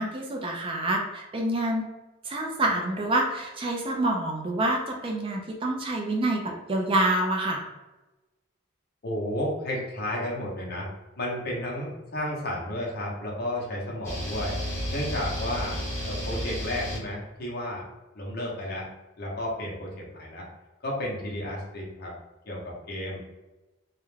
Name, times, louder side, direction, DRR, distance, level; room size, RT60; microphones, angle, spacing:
voice 1, 0.0-1.9 2.2-7.6, right 1 dB, 25° right, 1 dB, 0.3 m, -27 dB
voice 2, 9.0-10.9 11.2-14.6 14.9-17.9 18.1-18.9 19.2-20.5 20.8-22.1 22.5-23.4, left 1 dB, 50° left, -2 dB, 0.7 m, -32 dB
sound 1, 14.0-17.0, equal, 10° left, 0.7 m, -32 dB
2.3 x 2.1 x 3.1 m, 1.1 s
head